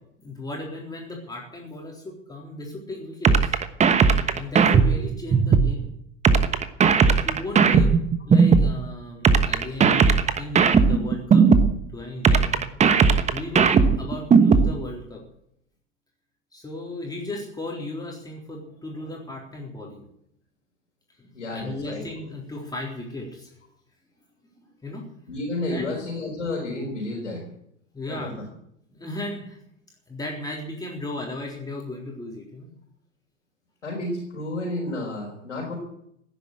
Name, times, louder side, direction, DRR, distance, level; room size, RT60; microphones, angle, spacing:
voice 1, 0.2-3.6 4.3-5.9 7.2-7.9 8.3-10.0 10.4-11.5 11.9-12.7 13.3-15.2 16.5-20.1 21.2-23.6 24.6-25.0 25.7-26.0 27.9-28.3 28.9-29.6 30.1-32.7, left 2 dB, 10° left, -1 dB, 3.8 m, -35 dB
sound 1, 3.2-5.7 6.2-8.7 9.2-11.7 12.2-14.7, right 5 dB, 20° right, 1.2 m, -17 dB
voice 2, 21.3-22.0 25.3-27.4 28.1-28.3 33.8-35.8, left 2 dB, 75° left, -2 dB, 4.9 m, -31 dB
16.5 x 10.5 x 8.0 m, 0.73 s
figure-of-eight pair, 90°, 37 cm